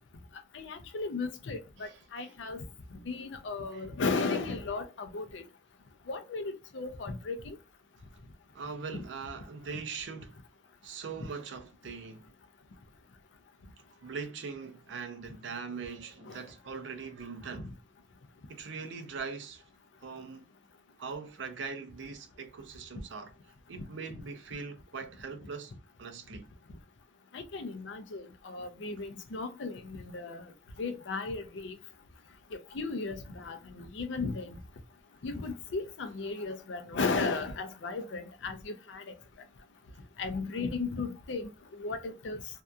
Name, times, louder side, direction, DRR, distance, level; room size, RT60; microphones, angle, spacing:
voice 1, 0.5-2.6 3.1-5.4 6.1-7.6 8.9-9.0 27.3-30.4 30.8-31.7 32.7-34.6 35.2-39.0 40.2-41.5 41.8-42.4, left 4 dB, 85° left, 0.5 m, -35 dB
voice 2, 1.8-2.3 3.7-3.9 8.5-10.4 10.8-12.3 14.0-17.7 18.5-19.6 20.0-20.5 21.0-23.3 23.7-25.7 26.0-26.5, right 5 dB, 80° right, 0.5 m, -41 dB
2.7 x 2.3 x 2.2 m
head